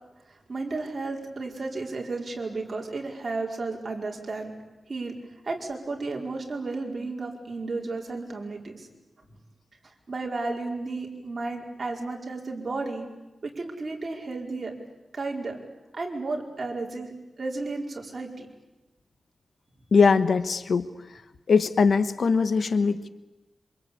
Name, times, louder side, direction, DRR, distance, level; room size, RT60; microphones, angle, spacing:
voice 1, 0.3-4.5 4.9-5.2 5.4-8.9 9.2-9.3 10.1-13.1 13.4-14.8 15.1-15.6 15.9-18.5, right 3 dB, 45° right, 1 dB, 4.7 m, -33 dB
voice 2, 19.9-20.9 21.5-23.1, left 5 dB, 75° left, 12 dB, 1.1 m, -21 dB
27.0 x 25.5 x 8.6 m, 1.0 s
wide cardioid pair, 115°, 0 cm